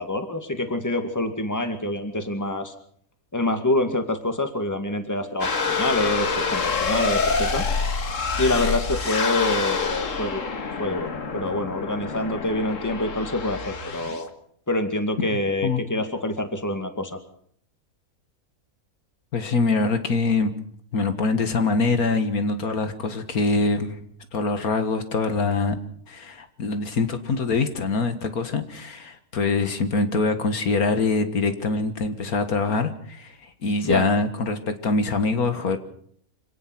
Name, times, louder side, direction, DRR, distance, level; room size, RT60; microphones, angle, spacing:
voice 1, 0.0-2.7 3.3-7.7 8.4-10.4 10.8-14.3 14.7-17.2 33.8-34.1, left 1 dB, 10° left, 6 dB, 2.1 m, -26 dB
sound 1, 5.4-14.3, left 4 dB, 60° left, 1.9 m, -27 dB
voice 2, 19.3-20.5 20.9-24.0 24.3-25.8 26.1-35.8, left 3 dB, 75° left, 8 dB, 2.1 m, -24 dB
26.0 x 18.0 x 6.1 m, 0.63 s
omnidirectional pair, 1.6 m